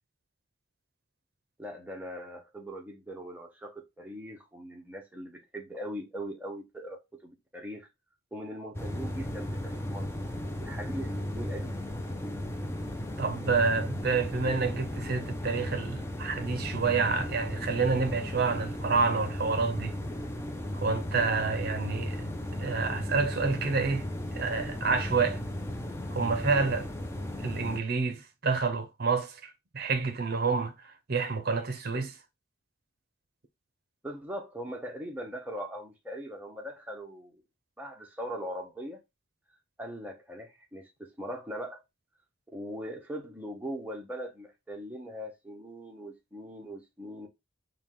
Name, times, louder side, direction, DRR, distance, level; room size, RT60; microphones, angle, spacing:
voice 1, 1.6-7.9 8.3-10.1 10.6-11.8 34.0-37.4 37.8-39.0 39.8-41.8 42.5-47.3, equal, 10° right, 0.8 m, -40 dB
sound 1, 8.7-27.8, left 1 dB, 15° left, 0.4 m, -35 dB
voice 2, 13.2-19.9 20.7-22.2 22.6-24.1 24.3-25.4 26.1-26.9 27.4-30.7 31.1-32.2, right 4 dB, 50° right, 0.7 m, -28 dB
4.6 x 2.3 x 3.7 m
head